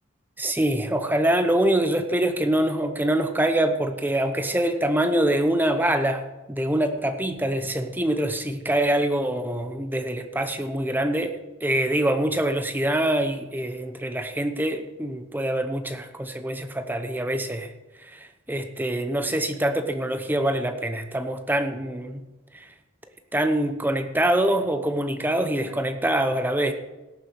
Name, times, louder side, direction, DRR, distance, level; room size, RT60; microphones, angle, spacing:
voice 1, 0.4-6.2 6.5-11.3 11.6-17.7 18.5-22.2 23.3-26.7, right 1 dB, 10° right, 8 dB, 0.9 m, -24 dB
17.5 x 6.9 x 4.7 m, 1.1 s
head